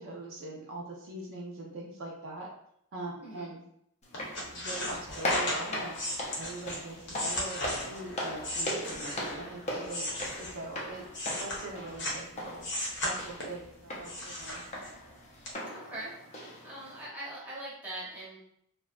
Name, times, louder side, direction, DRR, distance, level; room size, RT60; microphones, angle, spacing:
voice 1, 0.0-2.5 2.9-3.6 4.5-6.0 6.4-11.1 11.4-12.6 13.0-14.6, right 2 dB, 60° right, -2 dB, 0.5 m, -42 dB
voice 2, 3.2-3.5 15.7-16.1 16.6-18.4, right 1 dB, 5° right, -7 dB, 0.8 m, -41 dB
sound 1, 4.0-17.1, left 1 dB, 30° left, 0.5 m, -39 dB
sound 2, 4.1-9.4 9.8-12.3 12.6-13.6 14.0-15.1 15.4-15.5, left 1 dB, 55° left, 0.8 m, -36 dB
2.6 x 2.1 x 2.3 m, 0.71 s
head